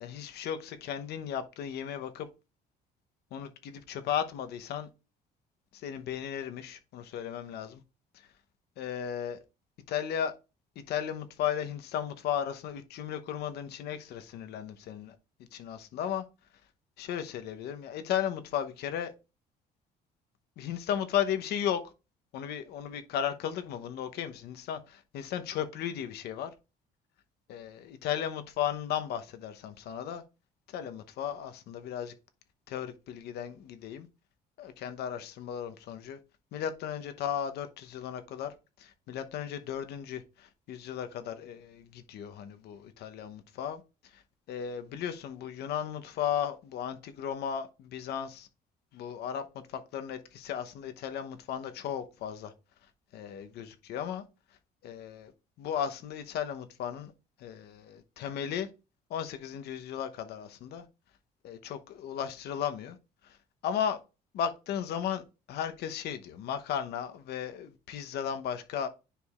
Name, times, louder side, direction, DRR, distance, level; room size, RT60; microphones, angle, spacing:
voice 1, 0.0-2.3 3.3-4.9 5.7-7.8 8.8-9.4 9.9-10.3 10.9-15.1 15.5-16.2 17.0-19.1 20.6-21.8 22.3-26.5 27.5-30.2 30.7-32.1 32.7-34.1 34.6-36.2 36.5-43.8 44.1-44.2 44.5-48.5 48.9-52.5 53.1-54.2 54.8-55.3 55.6-57.1 57.4-58.7 59.1-60.8 61.4-63.0 63.2-63.4 63.6-64.0 64.3-65.2 65.5-68.9, left 9 dB, 75° left, 0.9 m, -35 dB
10.0 x 4.7 x 2.4 m
cardioid pair, 110°, 17 cm